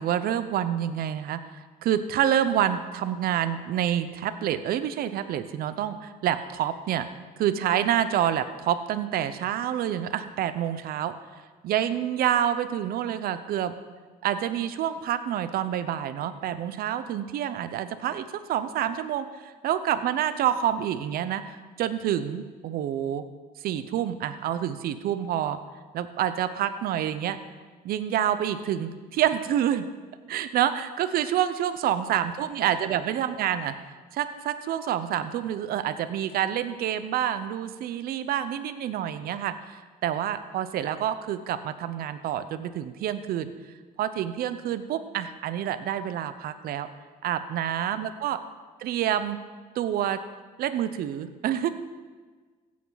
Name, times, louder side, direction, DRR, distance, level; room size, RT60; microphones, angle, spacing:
voice 1, 0.0-7.1 7.4-11.1 11.6-13.7 14.2-23.2 23.6-25.6 25.9-27.4 27.8-29.9 30.3-33.7 34.1-43.5 44.0-46.9 47.2-48.4 48.8-49.4 49.7-50.2 50.6-51.7, right 10 dB, 70° right, 12 dB, 0.8 m, -27 dB
15.5 x 8.6 x 4.0 m, 1.4 s
cardioid pair, 95°, 16 cm